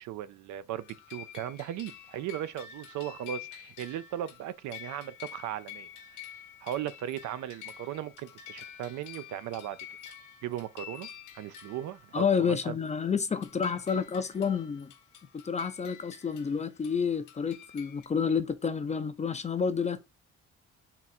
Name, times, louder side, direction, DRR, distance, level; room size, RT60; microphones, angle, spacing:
voice 1, 0.0-5.9 6.6-9.8 10.4-11.1 11.3-12.8, right 11 dB, 75° right, 0.4 m, -37 dB
sound 1, 0.8-12.4 12.9-13.0 13.4-18.1, left 10 dB, 80° left, 0.8 m, -48 dB
voice 2, 12.1-14.9 15.4-20.0, left 6 dB, 25° left, 0.4 m, -29 dB
3.8 x 2.4 x 4.1 m
cardioid pair, 90°, 30 cm